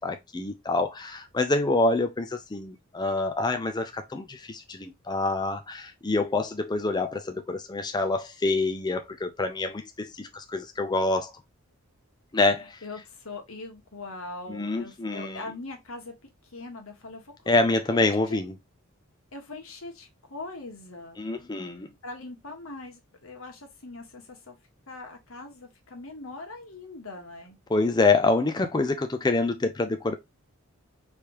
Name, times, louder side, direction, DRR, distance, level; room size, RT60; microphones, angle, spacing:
voice 1, 0.0-11.3 12.3-12.8 14.5-15.4 17.5-18.5 21.2-21.9 27.7-30.1, left 2 dB, 20° left, 0.5 m, -26 dB
voice 2, 12.5-17.6 17.9-18.4 19.3-21.2 22.0-24.6 24.9-27.6, left 3 dB, 75° left, 1.7 m, -41 dB
4.7 x 3.5 x 3.0 m
head